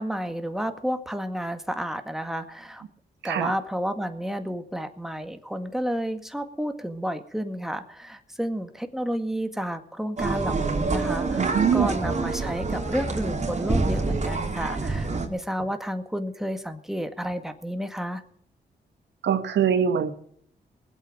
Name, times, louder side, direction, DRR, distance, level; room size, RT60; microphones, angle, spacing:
voice 1, 0.0-2.8 3.2-18.2, equal, ahead, 7 dB, 1.9 m, -31 dB
sound 1, 10.2-15.3, right 3 dB, 40° right, 3.4 m, -27 dB
voice 2, 11.4-11.9 19.2-20.1, right 8 dB, 80° right, 10 dB, 1.4 m, -23 dB
20.0 x 8.5 x 6.5 m, 0.65 s
cardioid pair, 60°, 18 cm